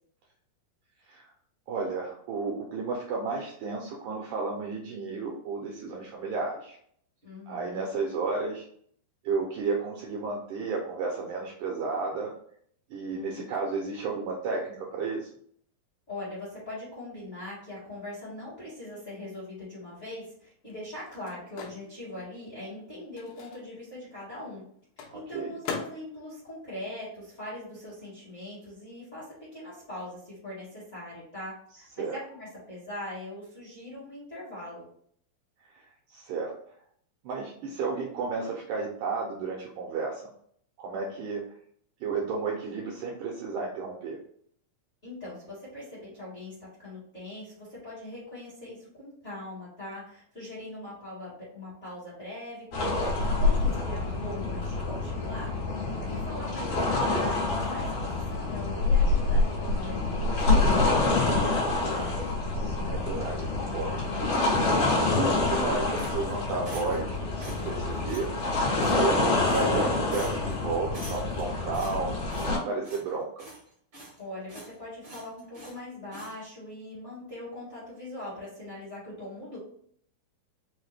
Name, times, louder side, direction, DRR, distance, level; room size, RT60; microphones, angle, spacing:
voice 1, 1.7-6.8 7.5-8.7 9.2-12.3 12.9-15.3 25.1-25.5 32.0-32.2 35.7-35.8 36.1-36.5 37.2-40.2 40.8-41.4 42.0-44.2 56.0-56.4 62.5-68.3 68.9-73.3, right 4 dB, 80° right, -1 dB, 1.8 m, -33 dB
voice 2, 7.2-7.9 13.1-13.5 16.1-24.6 25.0-34.8 45.0-55.5 56.1-62.1 74.2-79.6, left 1 dB, 40° left, -9 dB, 1.0 m, -41 dB
Microwave oven, 19.7-27.8 28.1-30.0, left 5 dB, 85° left, 2.4 m, -44 dB
sound 1, 52.7-72.6, left 3 dB, 60° left, 2.2 m, -27 dB
sound 2, 66.0-67.1 67.4-67.8 68.1-68.3 68.8-69.2 69.5-69.8 70.1-70.5 70.9-71.4 71.7-72.6 72.8-73.1 73.4-74.2 74.5-74.7 75.0-75.8 76.1-76.3, right 1 dB, 60° right, 0.7 m, -45 dB
5.6 x 2.1 x 3.2 m, 0.62 s
omnidirectional pair, 4.2 m